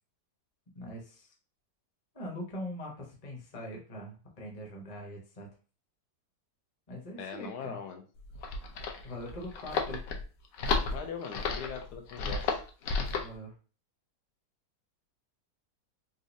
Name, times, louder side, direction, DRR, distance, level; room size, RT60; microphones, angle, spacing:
voice 1, 0.7-1.3 2.1-5.5 6.9-7.8 9.0-10.0 13.1-13.5, equal, 30° left, -1 dB, 0.7 m, -42 dB
voice 2, 7.2-8.0 10.9-12.6, left 6 dB, 90° left, 3 dB, 1.2 m, -41 dB
sound 1, 8.2-13.3, left 4 dB, 70° left, 0.9 m, -33 dB
4.0 x 2.5 x 2.6 m, 0.36 s
omnidirectional pair, 1.7 m